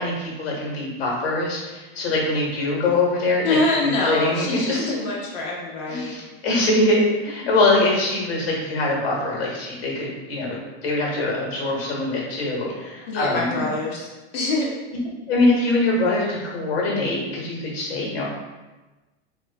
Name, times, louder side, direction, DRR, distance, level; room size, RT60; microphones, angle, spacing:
voice 1, 0.0-3.6 3.8-5.1 5.9-13.6 15.3-18.2, left 2 dB, 75° left, -2 dB, 1.3 m, -23 dB
voice 2, 3.4-6.2 13.1-14.7, left 2 dB, 60° left, -4 dB, 0.9 m, -25 dB
2.9 x 2.4 x 3.4 m, 1.1 s
supercardioid pair, 120°, 31 cm